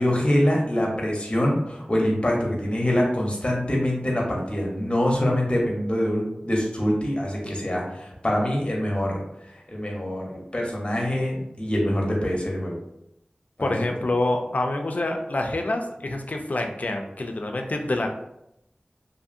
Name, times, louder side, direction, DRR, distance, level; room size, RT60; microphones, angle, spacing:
voice 1, 0.0-9.2 9.7-12.8 13.6-13.7, left 1 dB, 35° left, -1 dB, 0.8 m, -24 dB
voice 2, 13.6-18.1, left 2 dB, 60° left, 3 dB, 0.4 m, -26 dB
2.6 x 2.6 x 2.5 m, 0.82 s
wide cardioid pair, 60°, 3 cm